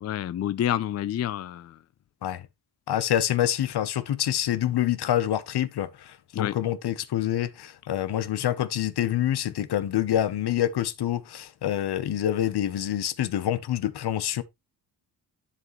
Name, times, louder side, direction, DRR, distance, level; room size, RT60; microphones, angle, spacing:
voice 1, 0.0-1.8 6.3-6.5, left 11 dB, 40° left, 0.4 m, -28 dB
voice 2, 2.9-14.4, left 11 dB, 65° left, 1.0 m, -26 dB
11.0 x 5.1 x 3.0 m
cardioid pair, 70°, 43 cm